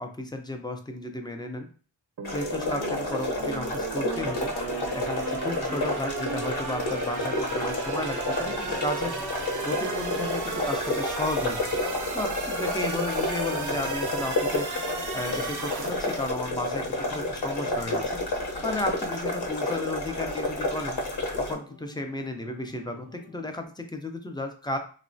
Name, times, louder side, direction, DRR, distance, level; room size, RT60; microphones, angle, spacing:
voice 1, 0.0-1.7 2.3-4.5 4.9-9.1 9.6-11.6 12.1-14.7 15.1-18.2 18.6-21.0 21.4-24.8, left 1 dB, 10° left, 4 dB, 0.3 m, -33 dB
sound 1, 2.2-21.5, left 2 dB, 60° left, 0.8 m, -30 dB
sound 2, 2.2-16.3, right 5 dB, 45° right, 0.5 m, -35 dB
sound 3, 4.1-23.6, left 2 dB, 85° left, 0.9 m, -47 dB
3.0 x 2.1 x 2.6 m, 0.40 s
wide cardioid pair, 100°, 43 cm